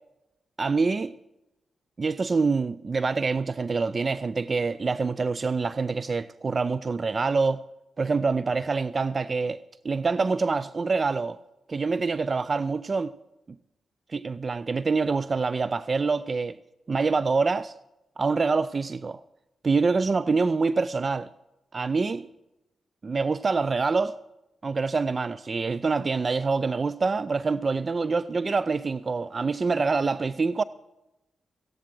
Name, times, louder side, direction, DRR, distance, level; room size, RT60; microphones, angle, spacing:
voice 1, 0.6-1.1 2.0-7.6 8.0-11.4 11.7-13.1 14.1-16.6 16.9-17.7 18.2-19.2 19.6-21.3 21.7-22.3 23.0-24.2 24.6-30.6, right 4 dB, 45° right, 0.4 m, -26 dB
14.5 x 10.0 x 6.0 m
supercardioid pair, 45°, 0 cm